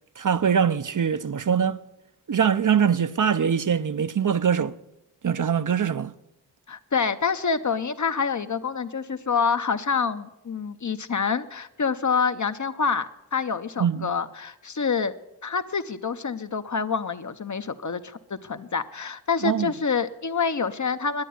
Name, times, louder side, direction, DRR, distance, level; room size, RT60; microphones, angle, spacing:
voice 1, 0.2-1.8 2.3-4.7 5.2-6.1 13.8-14.1 19.4-19.7, right 7 dB, 50° right, 0.6 m, -23 dB
voice 2, 6.7-15.1 15.4-21.2, left 5 dB, 45° left, 0.8 m, -27 dB
11.5 x 9.1 x 9.3 m
wide cardioid pair, 65°, 39 cm